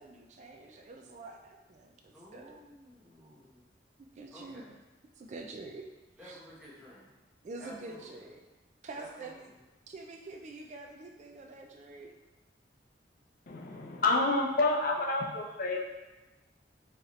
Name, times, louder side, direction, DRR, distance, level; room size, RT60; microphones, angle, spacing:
voice 1, 0.0-2.6 4.2-4.8 5.2-5.8 6.2-6.4 7.4-8.4 8.8-9.5 9.9-12.1, right 3 dB, 40° right, 2 dB, 0.4 m, -46 dB
voice 2, 2.1-3.6 4.3-4.7 6.2-7.1 7.6-8.3 8.9-9.1, equal, 5° right, -8 dB, 1.2 m, -52 dB
voice 3, 13.5-15.8, left 2 dB, 55° left, 0 dB, 0.6 m, -29 dB
4.7 x 3.0 x 3.1 m, 1.1 s
head